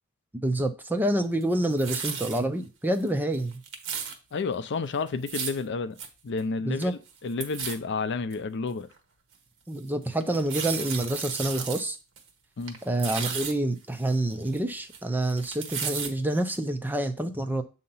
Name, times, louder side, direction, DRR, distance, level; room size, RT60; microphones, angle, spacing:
voice 1, 0.4-3.6 6.6-6.9 9.7-12.0 12.9-17.6, right 1 dB, 10° right, 0.5 m, -27 dB
sound 1, 1.4-2.4 2.9-3.1 3.3-4.1 5.1-5.6 6.0-6.1 6.4-6.5 6.7-7.1 7.4-7.7 8.3-8.4 9.0-9.1 10.2-11.8 12.2-12.3 12.6-13.5 14.0-15.0 15.2-16.1 16.5-16.6, right 7 dB, 60° right, 1.1 m, -34 dB
voice 2, 4.3-6.0 6.2-8.9 12.6-12.8, left 4 dB, 50° left, 0.5 m, -31 dB
7.6 x 2.9 x 5.4 m
head